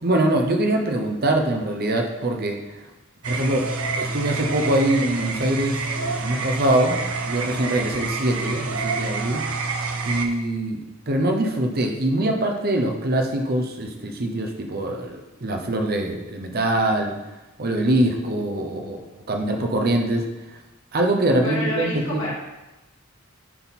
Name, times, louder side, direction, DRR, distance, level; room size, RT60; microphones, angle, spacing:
voice 1, 0.0-2.6 3.2-3.7 3.9-7.0 7.3-9.5 10.0-17.1 17.6-19.0 19.3-20.6 20.9-22.3, right 1 dB, 45° right, 3 dB, 0.8 m, -23 dB
sound 1, 3.2-10.3, right 3 dB, 85° right, 0.7 m, -27 dB
voice 2, 21.4-22.3, left 1 dB, 65° left, -5 dB, 2.1 m, -28 dB
10.0 x 3.8 x 4.1 m, 1.0 s
head